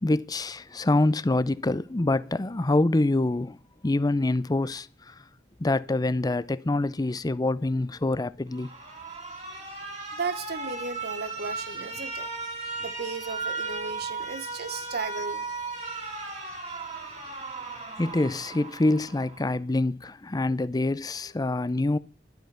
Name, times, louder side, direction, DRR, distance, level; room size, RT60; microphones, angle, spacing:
voice 1, 0.0-3.6 3.8-5.2 5.6-8.7 18.0-22.0, left 2 dB, 20° left, 0.5 m, -25 dB
Alarm, 8.5-19.5, right 3 dB, 40° right, 2.6 m, -36 dB
voice 2, 10.1-12.3 12.8-15.5, right 4 dB, 60° right, 1.0 m, -35 dB
11.5 x 10.5 x 5.6 m
head